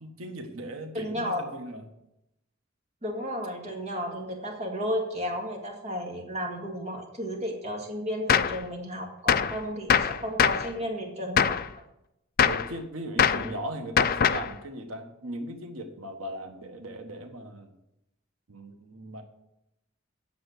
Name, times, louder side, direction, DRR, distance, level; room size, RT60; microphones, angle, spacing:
voice 1, 0.0-1.8 12.4-17.7 18.5-19.2, right 1 dB, 85° right, 5 dB, 1.3 m, -38 dB
voice 2, 0.9-1.5 3.0-11.6 13.2-13.6, equal, 35° right, 1 dB, 2.1 m, -33 dB
Gunshot gunfire, 8.3-8.6 9.3-9.6 9.9-10.7 11.4-11.7 12.4-12.7 13.2-13.5 14.0-14.5, left 7 dB, 45° left, 0.4 m, -22 dB
8.9 x 6.9 x 8.1 m, 0.86 s
head